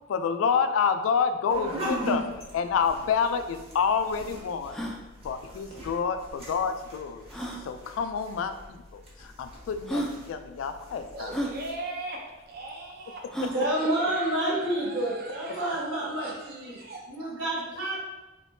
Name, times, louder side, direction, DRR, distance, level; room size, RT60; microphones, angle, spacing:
voice 1, 0.1-2.2 2.5-4.9 5.2-7.3 7.6-11.3, left 6 dB, 85° left, 10 dB, 0.3 m, -28 dB
sound 1, 1.5-11.7, right 1 dB, 30° right, 0.9 m, -40 dB
sound 2, 3.4-3.5 4.0-4.1 4.6-5.0 6.3-6.4 7.3-7.6 8.6-8.7 9.4-9.5 9.9-10.2 11.3-11.6 13.3-13.6, right 1 dB, ahead, 0.3 m, -32 dB
voice 2, 11.1-12.2 12.5-13.2 13.5-17.4, right 2 dB, 50° right, -1 dB, 0.6 m, -40 dB
voice 3, 13.5-16.8 17.1-18.0, right 1 dB, 80° right, -6 dB, 1.3 m, -29 dB
3.4 x 3.0 x 2.6 m, 1.1 s
head